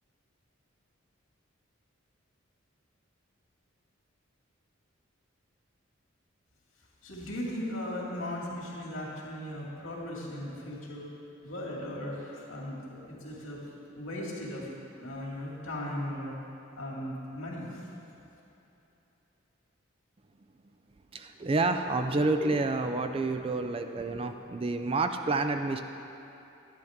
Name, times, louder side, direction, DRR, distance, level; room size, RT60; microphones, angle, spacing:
voice 1, 7.0-11.1 11.4-13.6 13.9-14.7 15.0-16.3 16.8-17.7, left 1 dB, 85° left, -4 dB, 2.4 m, -37 dB
voice 2, 21.1-25.8, right 3 dB, 25° right, 7 dB, 0.4 m, -29 dB
10.5 x 10.5 x 3.6 m, 3.0 s
head